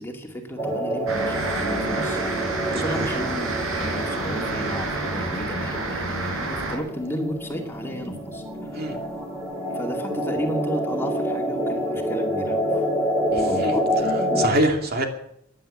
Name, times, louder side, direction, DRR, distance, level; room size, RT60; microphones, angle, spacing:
voice 1, 0.0-8.4 8.7-9.1 9.7-12.9 13.3-13.8 14.3-14.4, equal, 10° left, 2 dB, 2.3 m, -33 dB
sound 1, 0.6-14.5, equal, 15° right, 3.7 m, -27 dB
sound 2, 1.1-6.8, right 2 dB, 80° right, 5.2 m, -29 dB
voice 2, 2.8-3.2 8.7-9.0 13.6-13.7 14.0-15.1, right 1 dB, 50° right, 3 dB, 2.4 m, -25 dB
15.5 x 10.5 x 8.4 m, 0.76 s
head